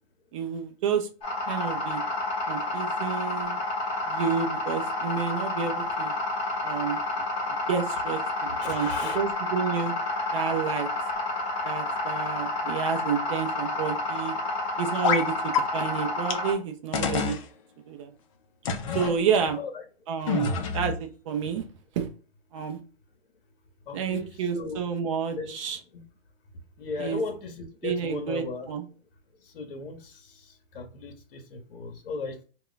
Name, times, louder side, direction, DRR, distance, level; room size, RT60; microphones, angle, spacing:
voice 1, 0.3-1.1 1.5-2.0 2.5-3.6 4.1-6.1 6.6-7.0 7.7-9.9 10.3-10.9 11.6-14.3 14.8-17.4 17.9-18.1 18.9-19.6 20.1-21.7 22.0-22.1 22.5-22.8 23.9-25.8 27.0-27.2 27.8-28.9, right 7 dB, 35° right, 0.5 m, -30 dB
sound 1, 1.2-16.5, left 2 dB, 15° left, 0.9 m, -30 dB
voice 2, 8.6-9.2 19.5-19.8 23.9-24.8 25.3-25.5 25.9-26.0 26.8-28.7 29.4-32.4, left 3 dB, 60° left, 0.8 m, -36 dB
sound 2, 15.0-15.3 15.5-15.6 16.3-16.4 16.9-17.4 18.6-19.1 20.3-21.0, left 5 dB, 35° left, 0.4 m, -26 dB
2.2 x 2.2 x 3.8 m
hypercardioid pair, 135°, 31 cm